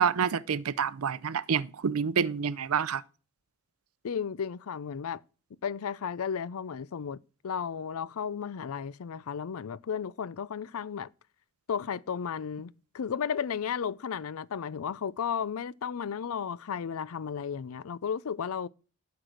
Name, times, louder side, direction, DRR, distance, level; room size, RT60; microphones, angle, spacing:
voice 1, 0.0-3.0, right 7 dB, 80° right, 0.5 m, -28 dB
voice 2, 4.0-5.2 5.6-7.2 7.4-11.1 11.7-18.7, left 7 dB, 80° left, 0.4 m, -34 dB
11.5 x 4.7 x 6.3 m
head